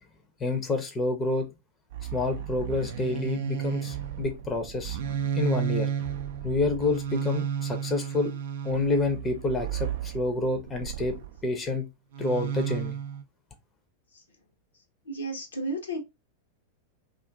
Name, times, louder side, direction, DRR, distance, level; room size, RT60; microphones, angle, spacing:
voice 1, 0.4-1.5 2.1-5.0 5.3-5.9 6.4-8.3 8.6-11.2 11.4-11.9 12.2-13.0, left 3 dB, 20° left, 0.6 m, -28 dB
sound 1, 1.9-11.5 12.1-13.2, right 8 dB, 55° right, 0.4 m, -33 dB
voice 2, 15.1-16.0, right 1 dB, 75° left, 0.8 m, -32 dB
2.5 x 2.4 x 3.4 m
figure-of-eight pair, 90°, 0 cm